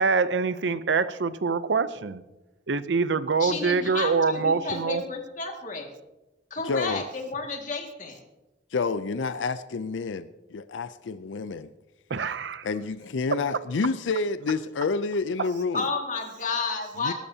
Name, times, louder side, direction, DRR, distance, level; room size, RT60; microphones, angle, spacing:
voice 1, 0.0-2.2 2.7-5.0 12.1-12.7, right 4 dB, 70° right, 0.6 m, -25 dB
voice 2, 3.4-5.9 6.5-8.2 15.7-17.1, left 4 dB, 45° left, 2.1 m, -31 dB
voice 3, 6.7-7.0 8.7-11.7 12.6-15.9 17.0-17.1, left 4 dB, 85° left, 0.5 m, -29 dB
21.0 x 12.0 x 2.8 m
head